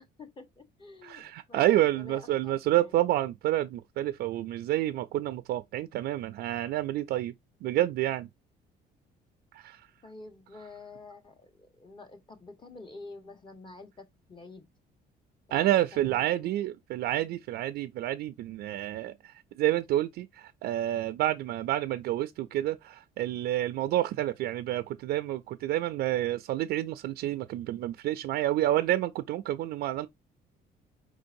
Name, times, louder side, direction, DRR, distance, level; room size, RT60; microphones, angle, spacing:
voice 1, 0.0-2.9 10.0-14.7 15.5-16.5, left 3 dB, 30° left, 1.3 m, -49 dB
voice 2, 1.0-7.3 7.6-8.3 9.5-9.8 15.5-19.1 19.6-30.1, right 14 dB, 70° right, 0.4 m, -29 dB
5.0 x 3.8 x 2.6 m
cardioid pair, 110°, 17 cm